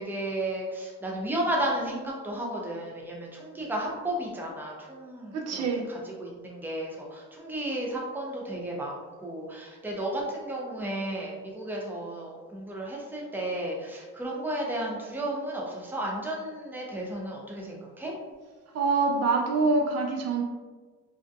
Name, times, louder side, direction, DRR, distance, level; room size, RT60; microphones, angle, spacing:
voice 1, 0.0-5.3 6.2-6.9 7.4-8.9 9.2-15.6 15.9-17.6 18.0-18.1, right 1 dB, 5° right, -3 dB, 0.5 m, -33 dB
voice 2, 5.3-5.8 18.7-20.4, right 4 dB, 60° right, 1 dB, 0.4 m, -25 dB
2.6 x 2.1 x 2.5 m, 1.4 s
cardioid pair, 90°, 30 cm